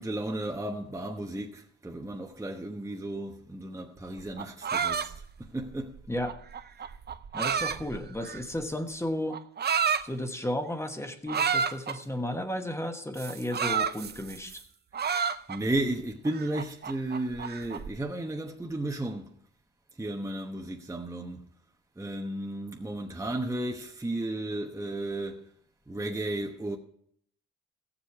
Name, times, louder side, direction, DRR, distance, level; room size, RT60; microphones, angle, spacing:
voice 1, 0.0-6.0 15.5-19.3 20.0-21.5 22.0-25.5 25.9-26.8, right 1 dB, 10° right, 1.0 m, -34 dB
sound 1, 4.2-8.6 9.3-10.0 11.3-12.0 13.2-14.6 14.9-15.8 16.2-17.9, right 6 dB, 35° right, 0.6 m, -30 dB
voice 2, 7.3-9.4 10.0-14.6, left 1 dB, 10° left, 1.3 m, -33 dB
15.5 x 7.3 x 4.8 m
cardioid pair, 90°, 30 cm